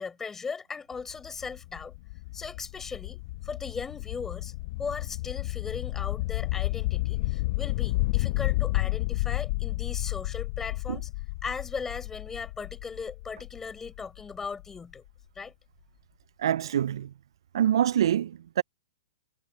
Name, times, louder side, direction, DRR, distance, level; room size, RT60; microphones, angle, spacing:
voice 1, 0.0-1.9 2.3-4.5 4.8-11.1 11.4-15.0 15.3-15.5, left 5 dB, 15° left, 4.9 m, -38 dB
sound 1, 0.9-14.7, left 21 dB, 50° left, 1.1 m, -31 dB
voice 2, 16.4-17.1 17.5-18.6, right 10 dB, 70° right, 0.4 m, -25 dB
hypercardioid pair, 120°, 3 cm